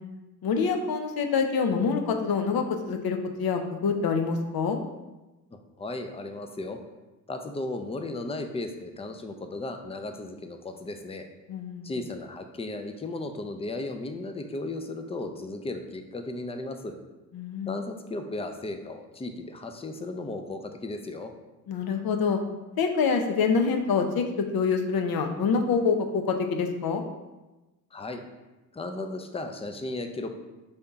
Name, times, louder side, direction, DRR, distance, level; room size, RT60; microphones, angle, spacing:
voice 1, 0.4-4.8 11.5-11.9 17.3-17.7 21.7-22.4 22.8-27.0, left 5 dB, 55° left, 4 dB, 0.7 m, -26 dB
voice 2, 5.5-6.8 7.3-11.3 11.8-16.9 17.7-21.3 27.9-28.2 28.7-30.3, left 2 dB, 15° left, 6 dB, 0.5 m, -35 dB
3.4 x 2.8 x 4.6 m, 1.1 s
supercardioid pair, 50°, 44 cm